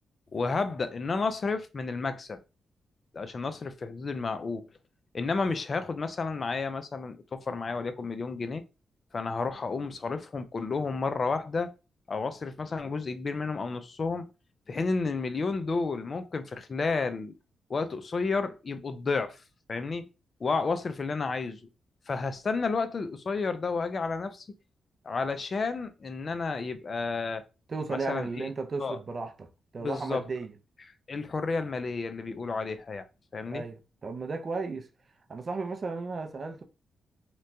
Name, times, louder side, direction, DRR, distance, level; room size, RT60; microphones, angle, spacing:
voice 1, 0.3-2.4 3.1-4.7 5.1-8.6 9.1-11.7 12.1-14.3 14.7-17.3 17.7-19.4 19.7-20.1 20.4-21.6 22.1-24.5 25.0-27.4 27.9-28.5 28.8-29.0 29.8-30.2 31.1-33.0 33.3-33.6, left 4 dB, 50° left, 0.4 m, -31 dB
voice 2, 27.7-29.5 29.7-30.5 33.5-34.9 35.3-36.6, right 4 dB, 45° right, 0.4 m, -34 dB
2.9 x 2.2 x 2.6 m
supercardioid pair, 60°, 0 cm